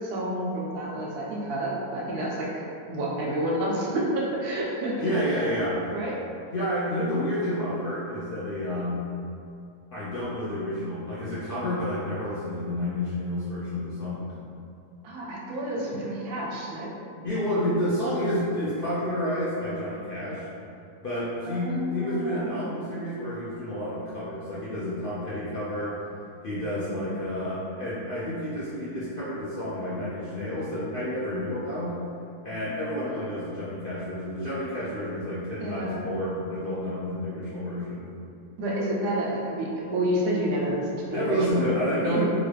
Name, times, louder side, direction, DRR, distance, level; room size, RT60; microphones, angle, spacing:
voice 1, 0.0-2.6 2.9-5.0 5.9-6.1 15.0-16.9 21.4-23.0 26.8-27.4 35.5-36.1 38.6-42.2, right 1 dB, 85° right, -4 dB, 1.1 m, -30 dB
voice 2, 5.0-5.9 6.5-9.0 9.9-14.3 17.2-20.5 21.0-25.9 26.4-32.0 32.4-38.0 41.1-42.2, equal, 70° left, -10 dB, 0.5 m, -30 dB
3.0 x 2.5 x 3.2 m, 2.5 s
omnidirectional pair, 1.6 m